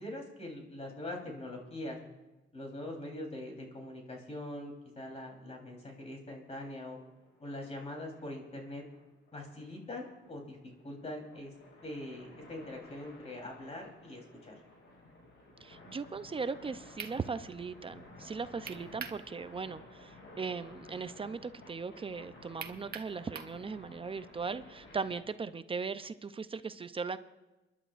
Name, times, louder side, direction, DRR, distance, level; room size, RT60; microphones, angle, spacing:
voice 1, 0.0-2.0 2.5-7.0 7.4-8.8 9.3-10.6 10.8-11.5 11.8-14.6, left 1 dB, 30° left, 1 dB, 3.8 m, -43 dB
sound 1, 6.8-25.2, left 1 dB, 75° left, 5.9 m, -54 dB
voice 2, 15.6-27.2, right 5 dB, 25° right, 12 dB, 0.5 m, -38 dB
sound 2, 17.0-17.2 18.7-19.2 19.6-19.7 22.6-23.6, right 7 dB, 50° right, 1.0 m, -42 dB
29.0 x 11.0 x 2.5 m, 1.1 s
cardioid pair, 90°, 20 cm